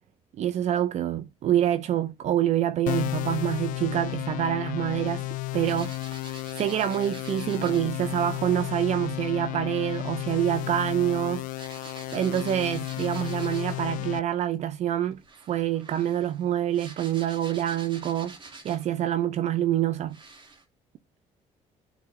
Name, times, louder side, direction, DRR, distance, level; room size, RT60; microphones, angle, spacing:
voice 1, 0.4-5.2 5.5-5.9 6.6-11.4 12.1-15.2 15.5-18.4 18.6-20.2, right 11 dB, 60° right, 0.5 m, -26 dB
sound 1, 2.9-14.2, left 20 dB, 80° left, 0.4 m, -33 dB
sound 2, 5.7-7.9 9.6-13.9 15.1-19.0 19.6-19.7 20.1-20.6, right 3 dB, 35° right, 2.4 m, -48 dB
10.0 x 3.8 x 3.6 m
cardioid pair, 110°, 13 cm